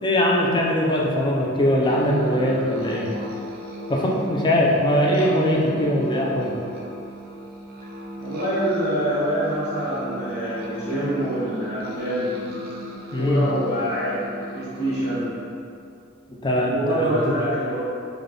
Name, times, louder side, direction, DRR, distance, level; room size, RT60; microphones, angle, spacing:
voice 1, 0.0-3.1 3.9-6.5 13.1-13.5 16.4-17.1, equal, 20° left, -2 dB, 0.4 m, -21 dB
sound 1, 1.8-15.2, equal, 50° right, 0.5 m, -36 dB
voice 2, 8.2-12.3 13.1-14.2 14.5-15.3 16.7-17.8, equal, 70° left, -15 dB, 1.3 m, -25 dB
3.3 x 2.3 x 3.8 m, 2.5 s
head